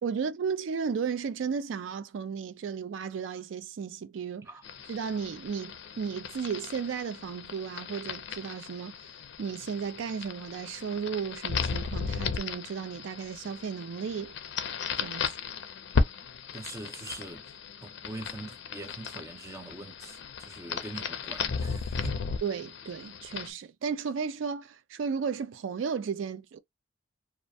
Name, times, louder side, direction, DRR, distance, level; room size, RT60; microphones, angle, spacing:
voice 1, 0.0-4.5 4.9-8.9 9.4-14.3 15.0-15.3 22.4-26.6, right 6 dB, 75° right, 0.4 m, -34 dB
sound 1, 4.6-23.5, left 5 dB, 65° left, 0.5 m, -35 dB
voice 2, 16.5-17.5 17.8-22.2, right 2 dB, 15° right, 0.6 m, -43 dB
2.4 x 2.1 x 2.6 m
head